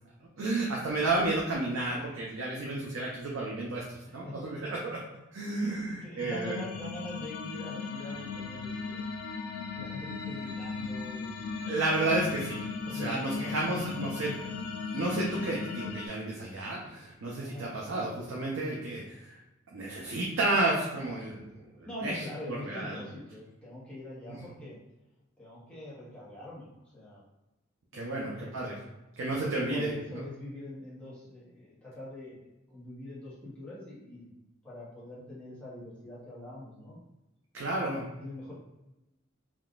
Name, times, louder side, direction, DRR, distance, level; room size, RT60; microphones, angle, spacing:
voice 1, 0.4-5.0 5.3-6.6 11.6-14.3 14.9-19.3 19.7-21.5 21.8-22.2 22.5-23.0 24.3-24.4 27.9-28.7 29.2-30.2 37.5-38.1, right 2 dB, 70° right, -3 dB, 0.5 m, -32 dB
voice 2, 4.1-4.7 5.6-9.1 9.7-11.8 12.9-13.8 14.2-14.6 17.4-17.7 21.9-24.8 25.4-27.2 27.9-28.7 29.4-37.0 38.2-38.5, left 1 dB, 5° left, -10 dB, 0.8 m, -44 dB
sound 1, 6.2-16.1, left 4 dB, 85° left, 0.3 m, -37 dB
3.6 x 2.3 x 2.4 m, 0.96 s
head